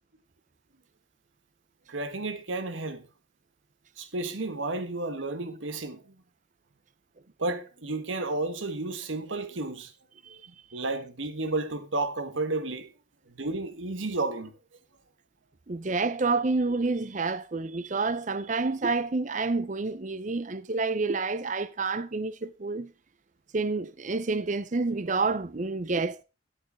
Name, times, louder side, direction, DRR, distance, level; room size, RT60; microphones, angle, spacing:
voice 1, 1.9-3.0 4.0-6.0 7.4-9.9 10.7-12.9 13.3-14.5, right 2 dB, 80° right, 1.4 m, -32 dB
voice 2, 15.7-22.9 23.5-26.2, right 3 dB, 40° right, 0.6 m, -29 dB
13.0 x 8.7 x 3.6 m
head